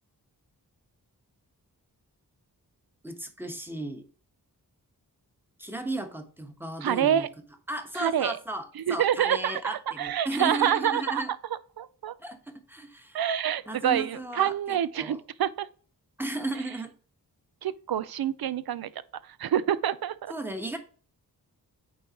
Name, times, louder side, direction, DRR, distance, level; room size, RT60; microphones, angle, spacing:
voice 1, 3.0-4.1 5.6-7.3 7.7-8.6 8.9-11.3 12.2-13.2 13.7-15.2 16.2-16.9 20.3-20.8, right 1 dB, 5° right, 1.2 m, -35 dB
voice 2, 6.8-7.3 7.9-8.4 8.8-11.2 11.8-12.1 13.1-15.7 17.6-18.9 19.2-20.3, right 10 dB, 70° right, 0.5 m, -27 dB
8.7 x 3.9 x 2.9 m
wide cardioid pair, 90°, 38 cm